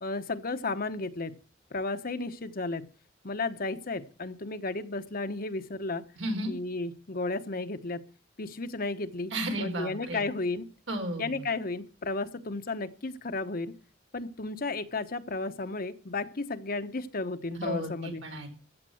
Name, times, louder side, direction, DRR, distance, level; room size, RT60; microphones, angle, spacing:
voice 1, 0.0-1.3 1.7-2.9 3.2-6.0 6.5-8.0 8.4-10.6 11.2-13.7 14.1-18.2, left 3 dB, 50° left, 9 dB, 1.1 m, -33 dB
voice 2, 6.2-6.5 9.3-10.2 10.9-11.4 17.5-18.5, right 1 dB, 85° right, 3 dB, 4.8 m, -33 dB
15.0 x 7.5 x 7.7 m, 0.37 s
head